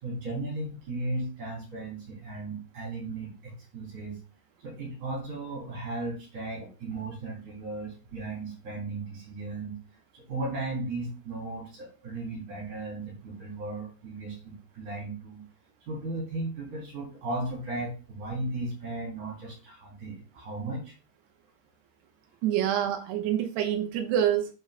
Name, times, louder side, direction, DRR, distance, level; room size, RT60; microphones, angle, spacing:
voice 1, 0.0-4.2 4.6-9.8 10.1-15.5 15.9-21.0, right 2 dB, 50° right, -4 dB, 4.4 m, -36 dB
voice 2, 22.4-24.5, right 10 dB, 90° right, 4 dB, 3.2 m, -26 dB
10.5 x 4.9 x 2.2 m, 0.34 s
omnidirectional pair, 4.8 m